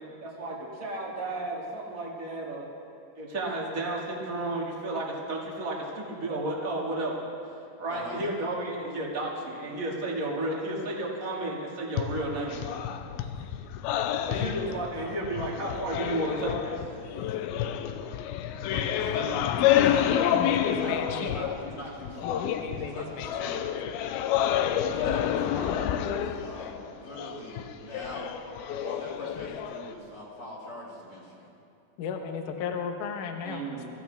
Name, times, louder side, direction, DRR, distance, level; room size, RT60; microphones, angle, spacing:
voice 1, 0.2-2.7 3.1-7.2 7.8-12.6 14.3-16.8 33.4-33.9, right 2 dB, 30° right, -3 dB, 1.8 m, -32 dB
voice 2, 7.9-8.2 14.1-14.4 18.7-19.4 19.8-20.3 20.7-23.6 24.9-28.4 28.8-31.5, left 1 dB, 45° left, -7 dB, 3.0 m, -42 dB
sound 1, 12.0-21.8 22.0-30.0, left 10 dB, 85° left, 2.3 m, -29 dB
voice 3, 19.8-21.5 22.2-23.6 32.0-33.7, left 6 dB, 65° left, 4 dB, 2.2 m, -33 dB
24.0 x 15.0 x 3.5 m, 2.7 s
omnidirectional pair, 4.7 m